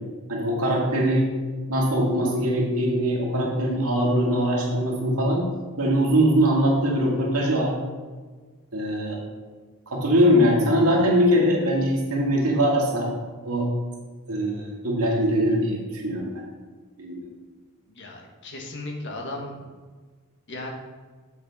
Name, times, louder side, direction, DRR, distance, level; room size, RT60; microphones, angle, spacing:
voice 1, 0.3-1.2 1.7-5.5 5.8-7.7 8.7-9.2 9.9-13.1 13.4-13.7 14.3-16.4 17.0-17.2, equal, 80° right, -2 dB, 2.1 m, -22 dB
voice 2, 17.9-19.7 20.5-20.7, left 2 dB, 55° left, 0 dB, 1.5 m, -36 dB
7.3 x 7.2 x 4.1 m, 1.4 s
head